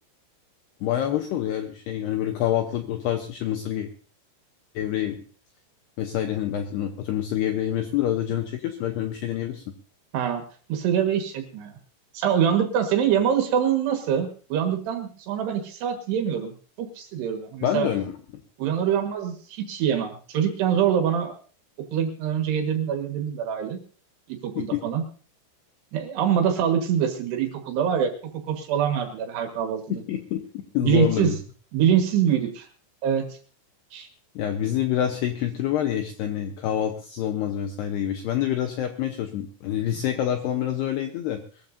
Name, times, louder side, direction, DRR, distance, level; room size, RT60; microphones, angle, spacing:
voice 1, 0.8-3.9 4.8-5.2 6.0-9.6 17.6-18.1 24.6-24.8 29.9-30.4 30.7-31.4 34.4-41.4, left 11 dB, 80° left, 6 dB, 2.4 m, -27 dB
voice 2, 10.1-10.4 10.7-11.7 12.1-16.5 16.8-17.9 18.6-21.3 21.9-23.8 24.3-25.0 25.9-28.1 28.5-30.0 30.8-31.3 31.7-32.7 33.0-33.2 33.9-34.1, right 8 dB, 65° right, 5 dB, 3.3 m, -24 dB
22.0 x 14.5 x 2.6 m, 0.41 s
omnidirectional pair, 5.8 m